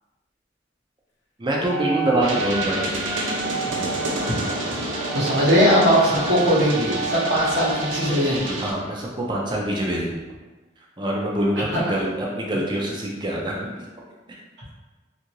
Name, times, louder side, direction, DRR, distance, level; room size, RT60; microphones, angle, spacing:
voice 1, 1.4-3.1 8.6-10.2 11.0-13.9 14.3-14.4, right 1 dB, 25° right, -2 dB, 0.4 m, -25 dB
Wind instrument woodwind instrument, 1.7-8.1, right 4 dB, 70° left, 0.9 m, -32 dB
sound 1, 2.2-8.7, right 1 dB, 90° right, 0.5 m, -29 dB
voice 2, 5.1-8.6 11.7-12.0, equal, 65° right, -8 dB, 1.0 m, -20 dB
2.7 x 2.5 x 3.0 m, 1.2 s
head